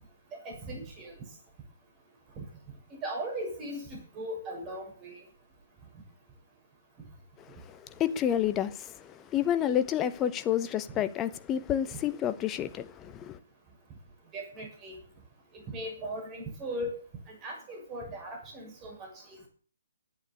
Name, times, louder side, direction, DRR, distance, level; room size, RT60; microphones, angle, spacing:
voice 1, 0.4-1.1 3.0-5.2 11.9-12.0 14.3-14.9 15.7-17.0 17.3-19.1, right 1 dB, 20° right, 6.7 m, -38 dB
voice 2, 7.5-13.4, left 10 dB, 20° left, 1.0 m, -30 dB
11.0 x 9.2 x 9.5 m
figure-of-eight pair, 135°, 0 cm